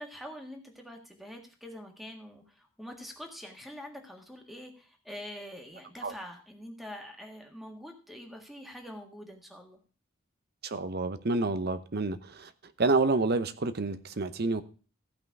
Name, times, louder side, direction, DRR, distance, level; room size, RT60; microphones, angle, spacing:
voice 1, 0.0-9.8, equal, ahead, 1.6 m, -45 dB
voice 2, 10.6-12.5 12.8-14.6, right 3 dB, 50° right, 0.8 m, -28 dB
15.0 x 5.6 x 4.7 m
head